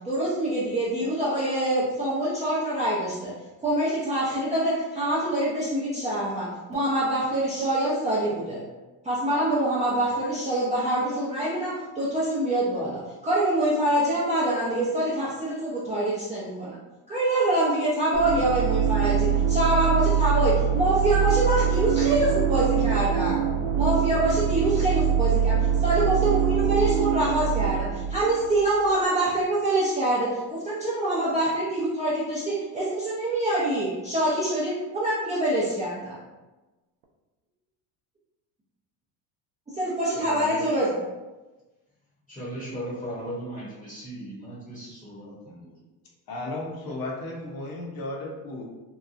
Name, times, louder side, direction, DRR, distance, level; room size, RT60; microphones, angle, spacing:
voice 1, 0.0-3.3 3.6-8.6 9.0-16.7 17.1-23.4 23.8-36.2 39.7-41.0, right 1 dB, 15° right, -10 dB, 0.6 m, -25 dB
sound 1, 18.1-28.9, right 8 dB, 65° right, 0.6 m, -24 dB
voice 2, 40.1-40.8 42.3-45.7, right 1 dB, 10° left, -8 dB, 1.0 m, -37 dB
voice 3, 46.3-48.6, left 2 dB, 50° left, -1 dB, 0.8 m, -34 dB
2.9 x 2.2 x 2.4 m, 1.1 s
supercardioid pair, 95°, 45 cm